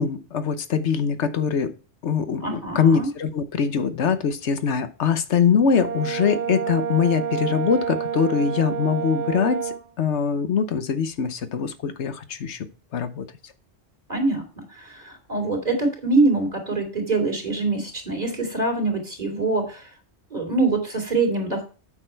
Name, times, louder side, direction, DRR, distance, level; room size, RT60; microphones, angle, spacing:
voice 1, 0.0-1.7 2.0-12.7 12.9-13.2, left 6 dB, 80° left, 1.2 m, -23 dB
voice 2, 2.4-3.1 14.1-19.9 20.3-21.6, right 3 dB, 35° right, 3.1 m, -24 dB
Brass instrument, 5.7-9.8, right 7 dB, 55° right, 0.6 m, -28 dB
8.6 x 6.6 x 4.4 m
omnidirectional pair, 1.1 m